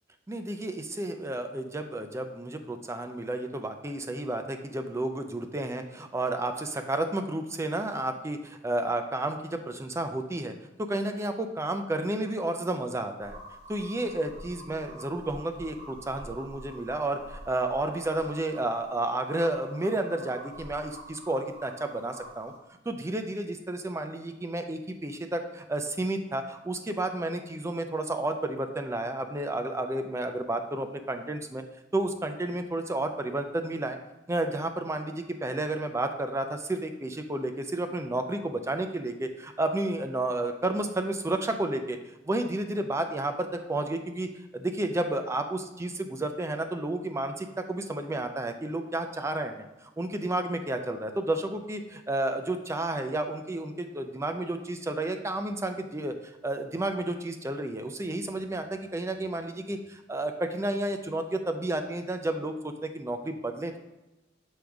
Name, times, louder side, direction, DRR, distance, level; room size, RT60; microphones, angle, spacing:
voice 1, 0.3-10.5 10.8-13.4 13.7-22.5 22.9-31.6 31.9-34.0 34.3-42.0 42.3-56.1 56.4-63.8, right 2 dB, 15° right, 6 dB, 0.4 m, -31 dB
sound 1, 13.2-22.6, right 1 dB, 35° right, 1.7 m, -47 dB
6.3 x 5.0 x 3.4 m, 1.0 s
head